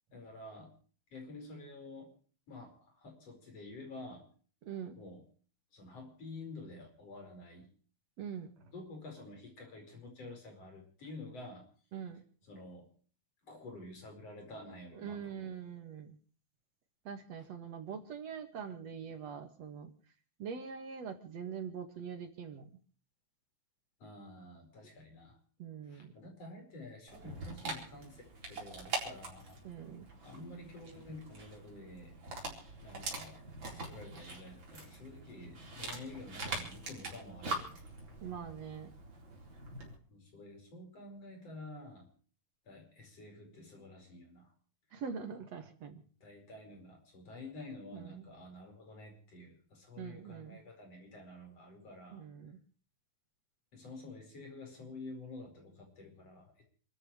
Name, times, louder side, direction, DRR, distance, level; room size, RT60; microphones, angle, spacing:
voice 1, 0.1-0.7 1.1-2.1 2.5-4.3 5.0-5.2 5.7-7.7 8.7-11.7 12.5-12.9 13.4-15.6 17.4-17.5 24.0-25.4 25.8-28.2 28.5-29.6 30.2-32.1 32.5-33.4 33.7-37.8 40.1-42.1 42.6-44.5 44.9-45.0 46.2-52.3 53.7-56.6, left 2 dB, 55° left, 3 dB, 6.0 m, -49 dB
voice 2, 4.6-5.0 8.2-8.7 11.9-12.2 14.9-16.2 17.0-19.9 20.4-22.7 25.6-26.1 29.6-30.1 38.2-38.9 44.9-46.0 47.9-48.3 50.0-50.6 52.1-52.6, right 7 dB, 65° right, 7 dB, 2.8 m, -43 dB
Dog, 27.1-40.0, right 2 dB, 40° right, 4.8 m, -44 dB
28.5 x 13.5 x 3.2 m, 0.43 s
omnidirectional pair, 3.3 m